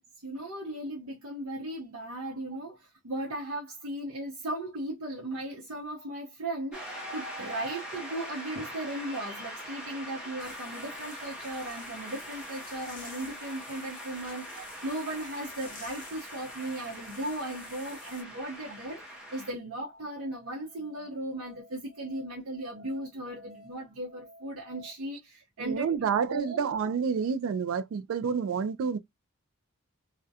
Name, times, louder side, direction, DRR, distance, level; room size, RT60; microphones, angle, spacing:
voice 1, 0.2-26.7, right 1 dB, 80° right, 0.8 m, -37 dB
Shout / Cheering / Applause, 6.7-19.5, equal, 5° right, 0.6 m, -42 dB
sound 1, 10.4-18.2, left 4 dB, 40° left, 0.7 m, -51 dB
Musical instrument, 19.6-24.9, equal, 70° left, 0.8 m, -55 dB
voice 2, 25.6-29.0, right 6 dB, 65° right, 0.3 m, -29 dB
2.4 x 2.1 x 2.6 m
head